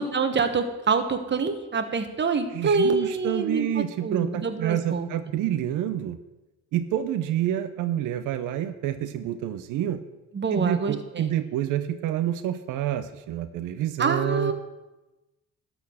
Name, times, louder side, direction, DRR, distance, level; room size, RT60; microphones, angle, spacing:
voice 1, 0.0-5.1 10.3-11.3 14.0-14.5, right 4 dB, 35° right, 8 dB, 1.3 m, -26 dB
voice 2, 2.5-6.2 6.7-10.0 10.5-14.5, right 11 dB, 90° right, 10 dB, 0.6 m, -28 dB
12.5 x 4.4 x 7.7 m, 1.0 s
cardioid pair, 90°, 30 cm